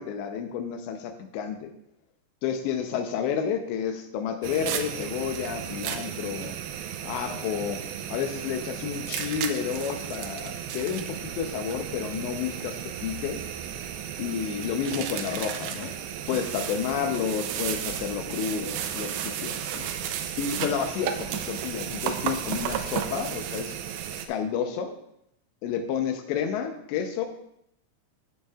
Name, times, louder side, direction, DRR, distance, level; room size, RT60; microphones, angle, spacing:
voice 1, 0.0-1.7 2.4-6.5 7.0-7.8 8.1-13.4 14.2-15.9 16.3-19.9 20.4-23.8 24.3-24.9 25.6-27.3, left 7 dB, 80° left, 6 dB, 3.0 m, -30 dB
sound 1, 4.4-24.3, right 9 dB, 85° right, 2.3 m, -34 dB
14.0 x 7.1 x 2.4 m, 0.73 s
omnidirectional pair, 5.1 m